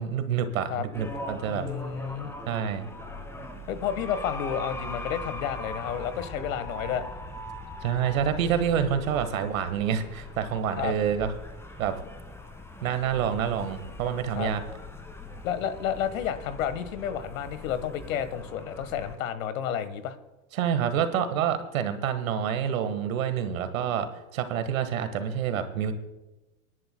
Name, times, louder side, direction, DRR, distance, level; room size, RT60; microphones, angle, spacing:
voice 1, 0.0-1.7 2.5-2.9 7.8-11.3 11.8-12.0 12.8-14.6 20.5-25.9, right 8 dB, 80° right, 9 dB, 1.6 m, -27 dB
sound 1, 0.9-19.2, left 1 dB, 5° left, 1.4 m, -41 dB
voice 2, 1.5-2.3 3.7-7.0 10.8-10.9 14.3-14.5 15.4-20.2, left 9 dB, 75° left, 11 dB, 1.5 m, -31 dB
25.5 x 11.0 x 2.2 m, 1.0 s
hypercardioid pair, 115°, 41 cm